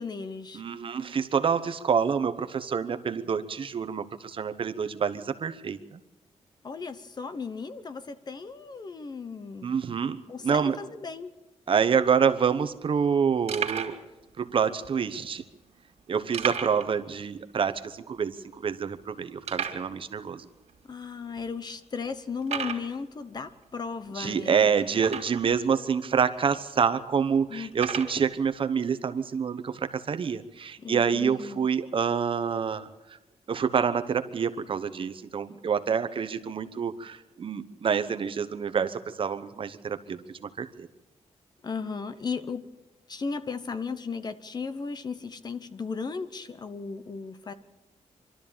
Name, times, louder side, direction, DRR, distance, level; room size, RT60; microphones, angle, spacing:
voice 1, 0.0-0.6 6.6-9.7 10.3-11.3 20.9-24.7 27.5-27.7 30.8-31.7 41.6-42.6 43.1-47.5, left 5 dB, 35° left, 12 dB, 0.9 m, -36 dB
voice 2, 0.5-6.0 9.6-10.8 11.7-14.0 14.4-15.4 16.1-20.5 24.1-32.9 33.5-40.9, right 6 dB, 45° right, 11 dB, 1.0 m, -27 dB
sound 1, 12.0-12.1 12.3-12.5 13.0-13.1 13.5-14.0 14.8-14.9 16.3-16.9 17.2-17.3 17.7-17.8 18.4-18.5 19.4-19.9 20.7-20.8 21.4-21.5 22.4-22.9 25.0-25.5 26.3-26.4 27.7-28.2, right 7 dB, 65° right, 2.7 m, -33 dB
25.0 x 13.0 x 8.7 m, 1.0 s
wide cardioid pair, 165°, 12 cm